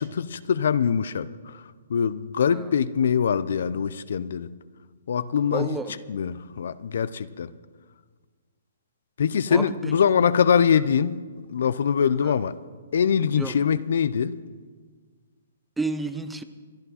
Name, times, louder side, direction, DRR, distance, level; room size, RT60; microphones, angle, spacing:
voice 1, 0.0-1.6 1.9-4.5 5.1-5.8 6.1-7.5 9.2-11.2 11.5-12.6 12.9-14.4, left 7 dB, 65° left, 0.6 m, -23 dB
voice 2, 5.5-6.0 9.5-9.6 12.2-12.3 13.4-13.5 15.8-16.4, right 3 dB, 5° right, 0.8 m, -30 dB
23.5 x 11.0 x 4.2 m
hypercardioid pair, 135°, 0 cm